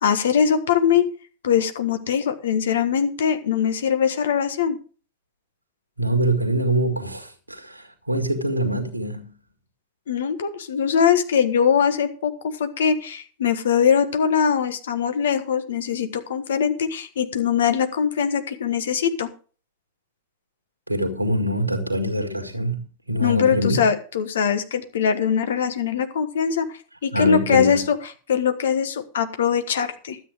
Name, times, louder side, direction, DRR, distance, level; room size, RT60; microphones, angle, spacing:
voice 1, 0.0-1.0 1.4-4.8 10.1-19.3 23.2-26.7 27.0-28.0 28.3-30.2, left 7 dB, 65° left, 1.3 m, -22 dB
voice 2, 6.0-9.3 20.9-23.8 27.1-27.8, equal, 85° right, 1.8 m, -24 dB
12.5 x 8.4 x 4.9 m
figure-of-eight pair, 90°, 0 cm